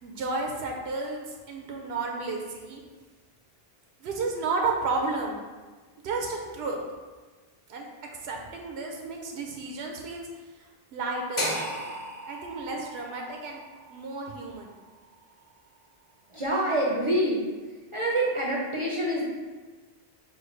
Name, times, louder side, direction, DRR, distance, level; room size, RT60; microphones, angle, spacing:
voice 1, 0.0-2.8 4.0-5.4 6.0-6.8 7.7-7.9 8.2-10.3 10.9-11.5 12.3-13.6 13.9-14.7, right 3 dB, 85° right, 1 dB, 0.8 m, -32 dB
sound 1, 11.4-15.5, equal, 35° left, 0.7 m, -36 dB
voice 2, 16.3-17.5 17.9-19.2, right 1 dB, 40° right, -4 dB, 0.5 m, -26 dB
6.2 x 2.2 x 3.1 m, 1.3 s
omnidirectional pair, 1.0 m